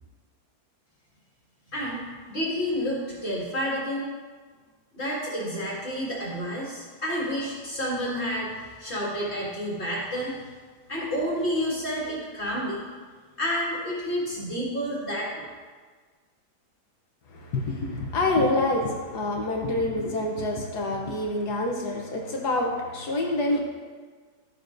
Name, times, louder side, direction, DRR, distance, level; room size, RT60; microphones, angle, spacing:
voice 1, 1.7-2.0 2.3-4.1 4.9-10.4 10.9-12.8 13.4-15.5, equal, 35° left, -6 dB, 2.1 m, -29 dB
voice 2, 17.3-23.6, left 2 dB, 65° left, 0 dB, 1.3 m, -27 dB
12.0 x 6.7 x 2.5 m, 1.5 s
omnidirectional pair, 1.9 m